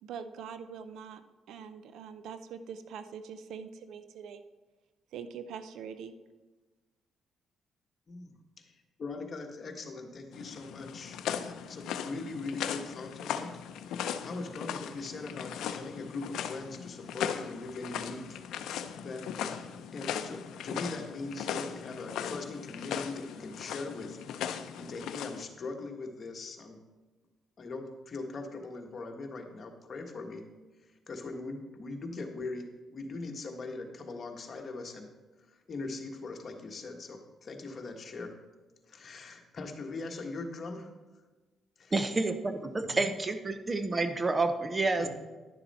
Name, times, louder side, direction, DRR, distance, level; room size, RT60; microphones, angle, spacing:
voice 1, 0.0-1.2 1.5-4.4 5.1-6.2, right 7 dB, 80° right, 11 dB, 0.5 m, -43 dB
voice 2, 8.1-13.5 13.8-18.4 18.7-24.2 24.5-26.8 27.6-30.4 31.1-32.7 32.9-35.1 35.5-38.3 38.9-40.9 41.8-41.9 42.9-43.1 45.0-45.1, left 3 dB, 45° left, 4 dB, 1.3 m, -41 dB
sound 1, 10.3-25.4, left 8 dB, 80° left, 0.5 m, -38 dB
voice 3, 41.9-45.1, right 3 dB, 25° right, 9 dB, 0.7 m, -29 dB
10.5 x 6.9 x 4.2 m, 1.2 s
cardioid pair, 90°, 0 cm